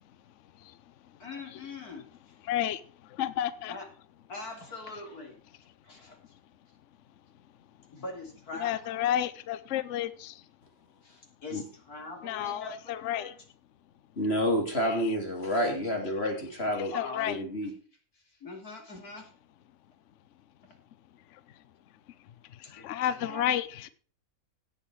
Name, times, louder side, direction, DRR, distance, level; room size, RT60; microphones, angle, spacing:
voice 1, 1.2-2.1 3.7-3.9 4.3-5.4 5.8-6.2 7.9-9.1 11.0-13.3 16.9-17.3 18.4-19.3 22.6-23.5, left 3 dB, 90° left, 3.7 m, -42 dB
voice 2, 2.4-3.7 8.6-10.4 12.2-13.3 14.8-15.1 16.9-17.4 21.3-21.4 22.5-23.9, left 11 dB, 60° left, 1.0 m, -31 dB
voice 3, 14.2-16.9 17.3-17.7, equal, 45° left, 3.2 m, -29 dB
17.0 x 6.3 x 4.7 m
omnidirectional pair, 1.6 m